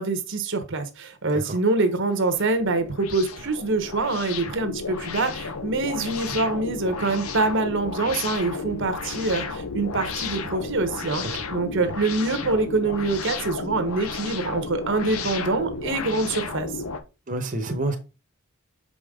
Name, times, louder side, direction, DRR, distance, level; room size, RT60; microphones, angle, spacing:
voice 1, 0.0-11.2 11.5-16.7, right 3 dB, 60° right, 1.1 m, -25 dB
sound 1, 1.9-17.0, left 4 dB, 90° left, 1.0 m, -33 dB
voice 2, 17.3-18.0, right 2 dB, 40° right, 1.0 m, -28 dB
6.9 x 5.2 x 3.7 m
head